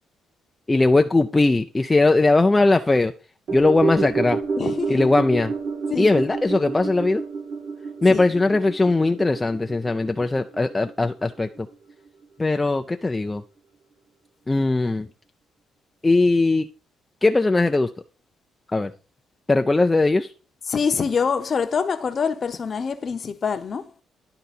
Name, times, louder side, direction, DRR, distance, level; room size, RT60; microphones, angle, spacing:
voice 1, 0.7-3.1 3.5-4.4 4.9-5.5 6.0-7.2 8.0-11.7 12.4-13.4 14.5-15.1 16.0-16.7 17.2-17.9 18.7-18.9 19.5-20.3, left 2 dB, 20° left, 0.4 m, -19 dB
sound 1, 3.5-11.9 12.2-12.3, right 4 dB, 65° right, 1.4 m, -30 dB
voice 2, 4.6-4.9 5.9-6.1 8.1-8.3 20.7-23.9, left 6 dB, 45° left, 0.8 m, -25 dB
10.5 x 3.9 x 4.2 m
cardioid pair, 90°, 0 cm